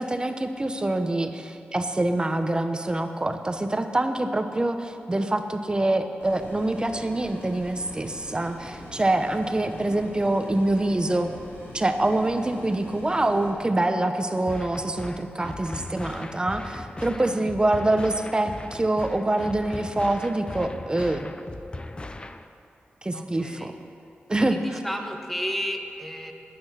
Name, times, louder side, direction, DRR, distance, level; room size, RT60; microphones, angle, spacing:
voice 1, 0.0-11.3 11.7-21.3 23.0-23.7 24.3-24.8, right 2 dB, 20° right, 7 dB, 1.0 m, -25 dB
sound 1, 6.2-13.5, left 1 dB, 90° left, 3.3 m, -43 dB
voice 2, 9.5-9.9 17.1-17.6 23.1-23.8 24.4-26.3, equal, 5° left, 3 dB, 1.5 m, -34 dB
Oil Can't Loop, 14.5-22.5, left 2 dB, 25° left, 0.7 m, -38 dB
20.5 x 8.7 x 5.8 m, 2.8 s
wide cardioid pair, 80°, 4 cm